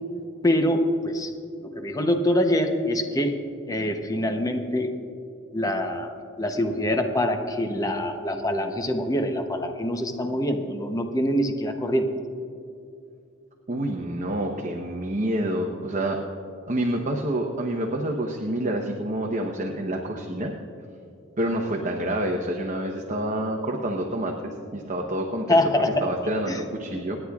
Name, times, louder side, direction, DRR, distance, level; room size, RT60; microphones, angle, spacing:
voice 1, 0.4-1.3 1.6-3.4 3.7-4.9 5.5-12.1 25.5-25.9 26.5-26.6, left 1 dB, 15° left, 5 dB, 0.7 m, -24 dB
voice 2, 13.7-16.2 16.7-20.5 21.4-27.2, right 1 dB, 40° right, 1 dB, 0.9 m, -28 dB
28.0 x 9.9 x 2.4 m, 2.6 s
head